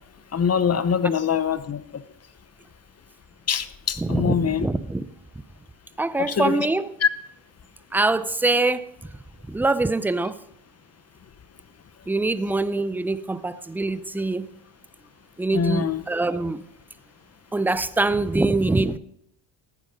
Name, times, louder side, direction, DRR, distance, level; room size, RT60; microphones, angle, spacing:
voice 1, 0.3-1.8 3.5-4.7 6.2-6.6 7.0-7.1 15.5-16.0, left 7 dB, 30° left, 14 dB, 0.9 m, -23 dB
voice 2, 4.0-5.1 6.0-6.9 7.9-8.8 9.5-10.4 12.1-14.5 15.4-16.6 17.5-19.0, right 2 dB, 5° right, 15 dB, 0.4 m, -24 dB
14.5 x 9.3 x 5.2 m, 0.75 s
supercardioid pair, 90°, 50 cm